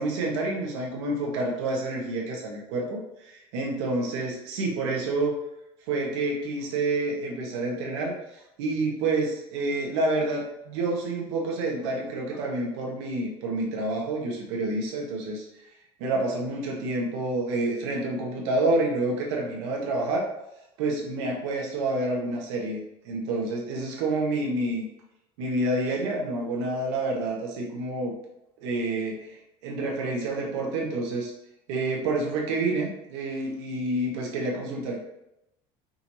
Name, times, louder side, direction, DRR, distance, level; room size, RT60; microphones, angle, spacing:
voice 1, 0.0-5.4 5.9-15.4 16.0-20.3 20.8-24.9 25.4-28.1 28.6-29.4 29.6-31.3 31.7-35.0, right 2 dB, 85° right, -1 dB, 1.3 m, -28 dB
5.4 x 3.1 x 2.7 m, 0.85 s
cardioid pair, 180°, 14 cm